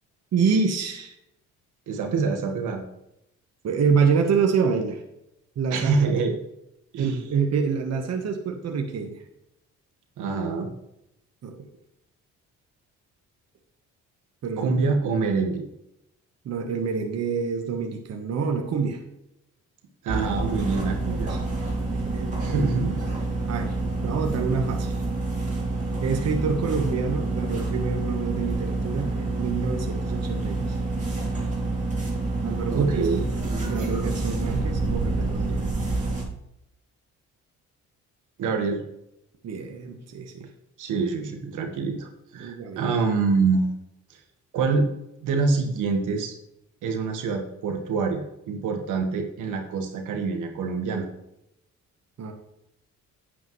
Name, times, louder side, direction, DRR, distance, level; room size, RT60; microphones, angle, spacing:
voice 1, 0.3-1.1 3.6-5.0 5.6-6.2 7.0-9.2 11.4-11.6 14.4-14.7 16.4-19.0 20.8-20.9 21.3-21.4 22.1-22.7 23.5-23.8 24.0-25.0 26.0-30.8 32.4-33.1 33.6-35.6 39.4-40.5 42.4-42.8 52.2-52.3, right 5 dB, 60° right, 3 dB, 1.3 m, -27 dB
voice 2, 1.9-2.8 5.7-6.3 6.9-7.2 10.2-10.7 14.6-15.6 20.0-21.3 22.4-23.0 32.7-33.2 38.4-38.8 40.8-43.6 44.5-44.9 45.2-46.3 46.8-51.1, right 4 dB, 85° right, 3 dB, 1.6 m, -25 dB
sound 1, 20.1-36.2, right 2 dB, 25° right, 3.3 m, -28 dB
9.4 x 8.6 x 3.2 m, 0.84 s
cardioid pair, 90°, 30 cm